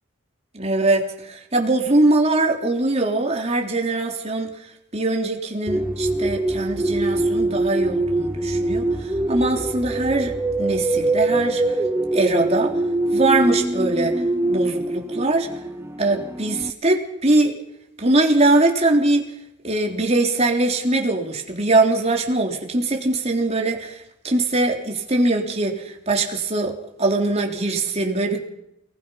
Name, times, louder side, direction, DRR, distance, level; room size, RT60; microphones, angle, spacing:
voice 1, 0.5-4.6 4.9-11.6 12.1-12.8 13.1-14.2 14.5-15.5 16.0-17.6 18.0-19.3 19.6-28.4, right 2 dB, 30° right, 1 dB, 3.4 m, -22 dB
sound 1, 5.7-16.7, right 2 dB, 10° right, 0.8 m, -23 dB
28.5 x 20.0 x 5.8 m, 0.84 s
head